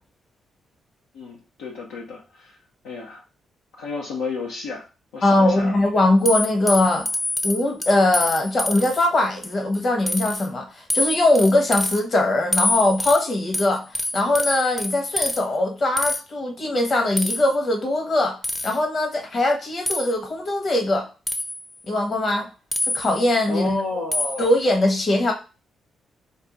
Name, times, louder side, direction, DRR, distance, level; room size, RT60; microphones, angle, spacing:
voice 1, 1.1-2.5 2.8-3.2 3.8-4.8 5.1-5.8 23.5-24.5, left 3 dB, 80° left, -2 dB, 0.6 m, -31 dB
voice 2, 5.2-7.1 7.4-13.9 14.1-21.1 21.9-22.5 22.9-23.8 24.4-25.3, left 1 dB, 45° left, 2 dB, 1.1 m, -21 dB
sound 1, 6.3-9.1 9.4-9.8 10.1-10.5 10.9-12.0 12.5-15.4 16.0-16.2 17.2-17.5 18.4-18.8 19.9-20.1 21.3-21.7 22.7-23.3 24.1-24.5, left 1 dB, 15° left, 0.6 m, -26 dB
2.6 x 2.3 x 3.8 m, 0.31 s
hypercardioid pair, 45°, 0 cm